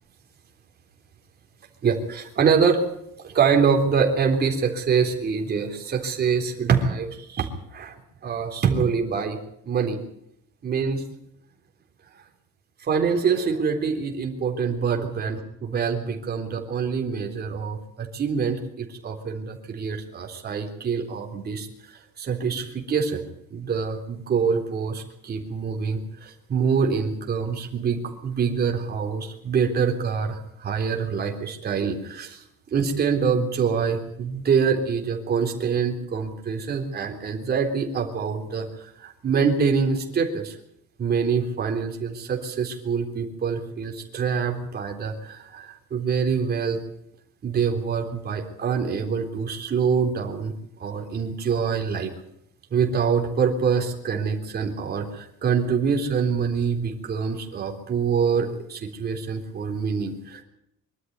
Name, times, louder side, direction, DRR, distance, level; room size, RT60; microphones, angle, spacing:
voice 1, 1.8-2.9 3.2-8.0 8.2-9.4 9.7-10.0 10.6-11.0 12.8-15.4 15.6-21.7 22.2-23.2 23.5-32.4 32.7-40.6 41.0-46.8 47.4-50.5 50.8-52.1 52.7-60.4, right 6 dB, 30° right, 3 dB, 3.7 m, -25 dB
24.5 x 13.0 x 9.6 m, 0.78 s
cardioid pair, 165°, 30 cm